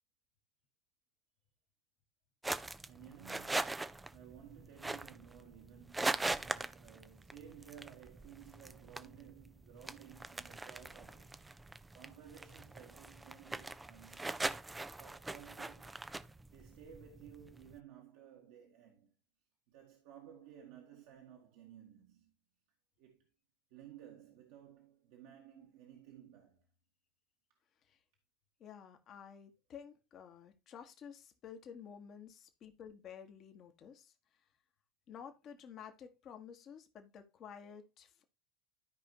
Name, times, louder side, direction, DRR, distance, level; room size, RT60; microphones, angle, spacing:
sound 1, 2.4-17.8, right 2 dB, 10° right, 0.6 m, -42 dB
voice 1, 2.9-14.5 15.0-16.1 16.5-19.1 19.7-22.3 23.0-23.3 23.7-26.7, right 10 dB, 60° right, 1.8 m, -56 dB
voice 2, 28.6-34.1 35.1-38.2, left 7 dB, 40° left, 1.6 m, -52 dB
13.0 x 5.0 x 2.9 m
hypercardioid pair, 80°, 0 cm